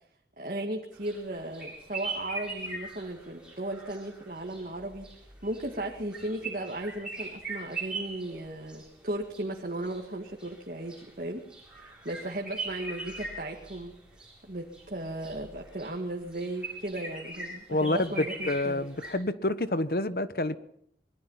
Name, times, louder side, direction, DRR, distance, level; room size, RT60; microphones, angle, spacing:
voice 1, 0.4-5.1 5.4-11.4 11.8-13.9 14.4-18.9, right 1 dB, 50° right, 0 dB, 2.2 m, -36 dB
sound 1, 0.9-19.1, right 3 dB, 5° right, 7.9 m, -41 dB
voice 2, 17.7-20.6, left 1 dB, 55° left, 13 dB, 1.1 m, -28 dB
25.5 x 21.0 x 5.8 m, 0.70 s
head